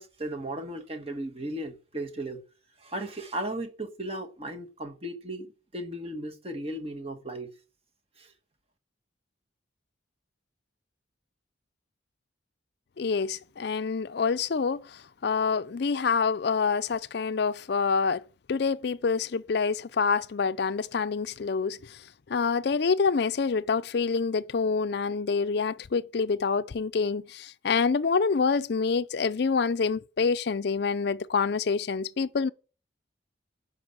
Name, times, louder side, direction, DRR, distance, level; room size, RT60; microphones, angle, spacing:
voice 1, 0.0-2.4 2.8-7.5 8.2-8.3, right 1 dB, 30° right, 1.4 m, -36 dB
voice 2, 13.0-18.2 18.5-22.0 22.3-32.5, left 5 dB, 60° left, 0.4 m, -27 dB
11.5 x 5.5 x 8.8 m
head